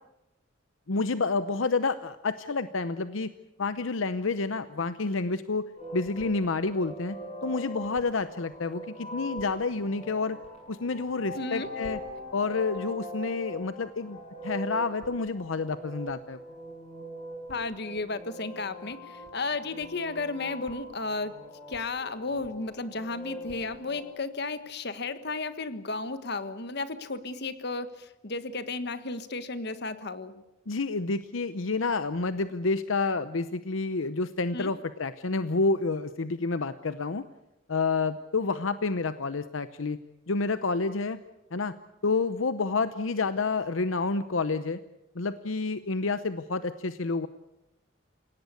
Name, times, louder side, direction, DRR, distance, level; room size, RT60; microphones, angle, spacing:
voice 1, 0.9-3.3 3.6-7.2 7.4-10.4 10.7-12.0 12.3-14.2 14.4-16.4 30.7-37.2 37.7-40.0 40.3-41.2 41.5-41.7 42.0-44.8 45.1-47.3, left 3 dB, 80° left, 12 dB, 0.8 m, -29 dB
sound 1, 5.8-24.1, equal, 30° left, 7.1 m, -42 dB
voice 2, 11.3-11.7 17.5-21.4 21.7-30.4 34.5-34.7, left 3 dB, 55° left, 12 dB, 1.4 m, -34 dB
28.0 x 17.5 x 8.2 m, 0.91 s
head